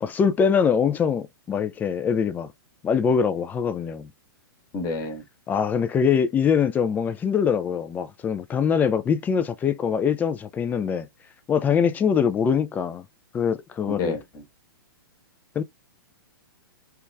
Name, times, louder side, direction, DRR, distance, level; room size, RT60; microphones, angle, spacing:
voice 1, 0.0-2.5 2.8-4.1 5.5-11.1 11.5-13.0 13.3-14.2 15.6-15.7, left 7 dB, 15° left, 0.3 m, -23 dB
voice 2, 4.7-5.2 13.9-14.4, left 3 dB, 30° left, 1.1 m, -29 dB
3.3 x 3.0 x 2.3 m
figure-of-eight pair, 110°, 12 cm